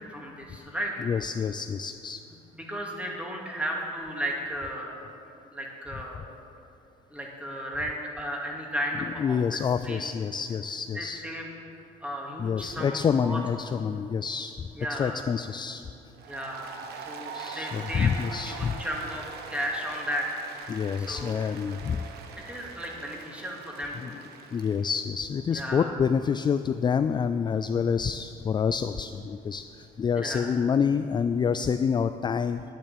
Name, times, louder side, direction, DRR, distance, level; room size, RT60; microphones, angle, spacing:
voice 1, 0.0-1.1 2.5-5.1 5.5-6.3 7.1-9.6 9.8-10.0 10.9-11.5 12.0-13.4 14.8-15.2 16.3-19.2 19.5-20.4 21.0-21.4 22.5-24.2 25.5-25.9 30.2-30.5, equal, 5° right, -1 dB, 2.5 m, -34 dB
voice 2, 1.0-2.2 9.2-11.2 12.4-15.8 17.3-18.8 20.7-22.0 24.0-24.1 24.5-32.6, left 6 dB, 25° left, 10 dB, 0.3 m, -27 dB
Applause, 16.2-24.9, right 5 dB, 70° right, 1.3 m, -42 dB
10.5 x 8.8 x 8.6 m, 2.7 s
cardioid pair, 110°, 17 cm